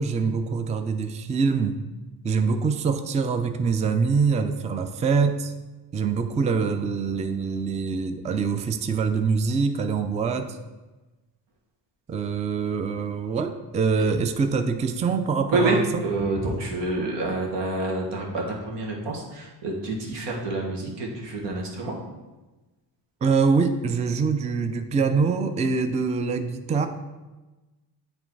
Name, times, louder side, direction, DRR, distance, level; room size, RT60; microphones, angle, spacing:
voice 1, 0.0-1.8 2.2-5.5 5.9-10.6 12.1-16.0 23.2-26.9, right 5 dB, 15° right, 8 dB, 0.4 m, -24 dB
voice 2, 15.5-22.0, right 2 dB, 85° right, -1 dB, 1.6 m, -27 dB
8.5 x 3.3 x 4.6 m, 1.2 s
cardioid pair, 95°, 41 cm